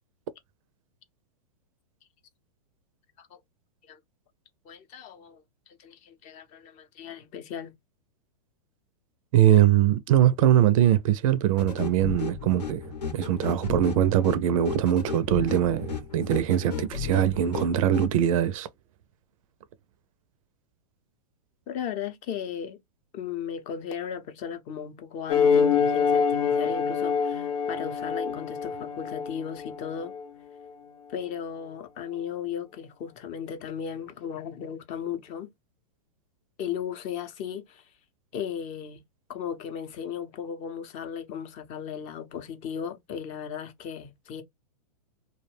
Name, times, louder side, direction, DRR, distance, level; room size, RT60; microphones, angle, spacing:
voice 1, 4.6-7.7 21.7-22.8 23.1-30.1 31.1-35.5 36.6-37.9 38.3-39.0 39.3-44.4, left 8 dB, 35° left, 0.6 m, -36 dB
voice 2, 9.3-12.8 13.1-18.7, right 11 dB, 55° right, 0.4 m, -22 dB
sound 1, 11.6-18.1, left 6 dB, 85° left, 0.9 m, -34 dB
sound 2, 25.3-30.2, left 6 dB, 60° left, 0.9 m, -25 dB
2.3 x 2.1 x 3.1 m
hypercardioid pair, 120°, 21 cm